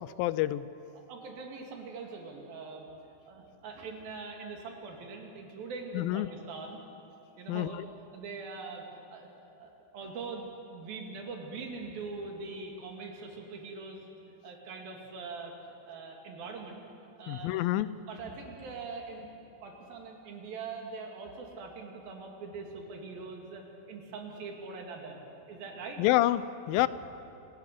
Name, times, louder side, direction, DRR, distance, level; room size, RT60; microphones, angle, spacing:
voice 1, 0.0-0.7 5.9-6.3 7.5-7.9 17.3-17.9 26.0-26.9, left 15 dB, 85° left, 16 dB, 2.4 m, -28 dB
voice 2, 0.9-2.9 3.3-6.8 7.4-7.8 8.1-8.8 9.1-9.3 9.6-14.2 14.4-16.9 17.2-17.5 18.1-19.3 19.6-25.2 25.5-26.0, right 4 dB, 85° right, 1 dB, 4.2 m, -42 dB
27.0 x 16.0 x 6.8 m, 2.8 s
omnidirectional pair, 4.1 m